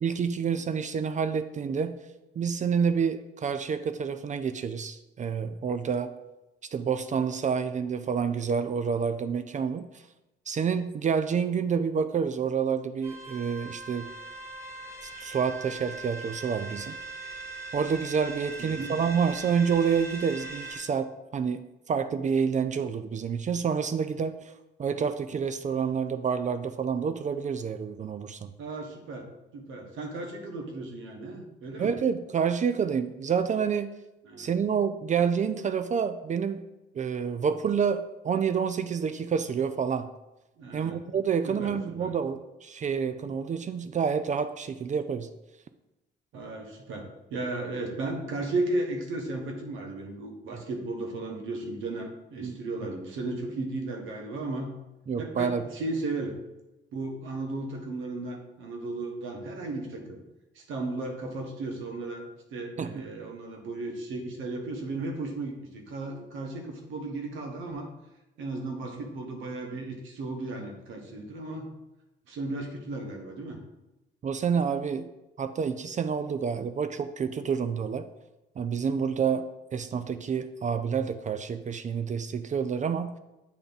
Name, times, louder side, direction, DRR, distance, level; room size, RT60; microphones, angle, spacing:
voice 1, 0.0-2.0 2.4-6.1 6.7-9.9 10.5-14.1 15.0-17.0 17.7-24.5 24.8-28.5 31.8-33.9 34.4-36.7 36.9-40.1 40.7-45.3 52.4-52.6 55.1-55.6 62.8-63.0 74.2-75.1 75.4-78.1 78.6-79.4 79.7-83.1, right 6 dB, 40° right, 10 dB, 0.4 m, -28 dB
sound 1, 13.0-20.8, right 3 dB, 15° right, 1.5 m, -40 dB
voice 2, 18.6-18.9 28.6-32.0 34.2-34.5 40.6-41.0 41.4-42.1 46.3-54.7 55.2-56.3 56.9-60.2 60.5-67.9 68.4-71.7 72.3-73.6, right 2 dB, 85° right, 2 dB, 1.2 m, -35 dB
8.3 x 3.4 x 4.0 m, 0.98 s
cardioid pair, 90°, 20 cm